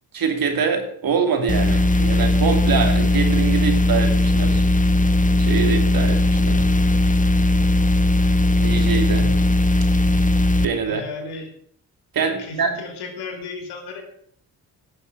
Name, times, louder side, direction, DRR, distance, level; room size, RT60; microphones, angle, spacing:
voice 1, 0.1-4.6 5.4-6.6 8.6-9.4 10.6-11.0 12.1-12.7, right 6 dB, 65° right, 5 dB, 2.9 m, -24 dB
sound 1, 1.5-10.7, left 2 dB, 20° left, 1.1 m, -18 dB
voice 2, 10.8-11.5 12.4-14.0, left 4 dB, 90° left, 4 dB, 3.1 m, -34 dB
11.5 x 6.9 x 8.0 m, 0.66 s
cardioid pair, 70°, 38 cm